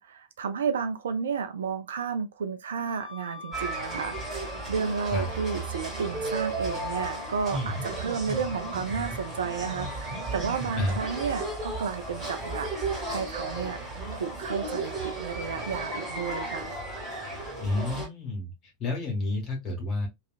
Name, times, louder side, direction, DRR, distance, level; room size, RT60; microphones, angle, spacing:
voice 1, 0.0-13.8 14.1-16.7, right 6 dB, 65° right, 0.4 m, -32 dB
Wind instrument woodwind instrument, 2.8-11.5, left 5 dB, 85° right, 0.8 m, -47 dB
sound 1, 3.5-18.1, right 2 dB, 15° right, 1.6 m, -34 dB
voice 2, 17.6-20.1, left 2 dB, 30° left, 1.3 m, -30 dB
2.7 x 2.4 x 2.4 m
figure-of-eight pair, 90°, 0 cm